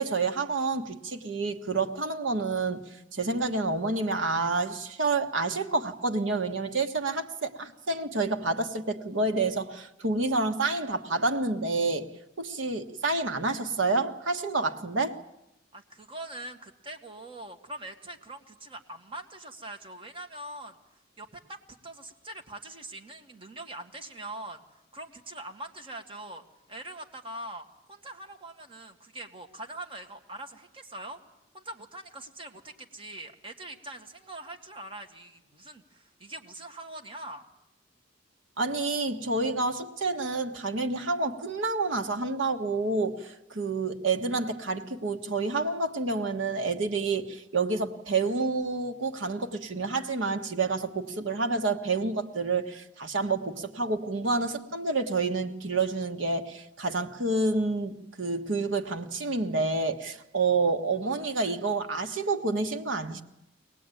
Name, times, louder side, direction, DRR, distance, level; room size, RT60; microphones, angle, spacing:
voice 1, 0.0-12.1 12.4-15.2 38.6-63.2, right 3 dB, 80° right, 1.4 m, -29 dB
voice 2, 15.7-20.8 21.2-24.6 24.9-26.4 26.7-31.2 31.5-37.5, right 1 dB, 30° right, 1.9 m, -43 dB
23.0 x 18.5 x 9.1 m
head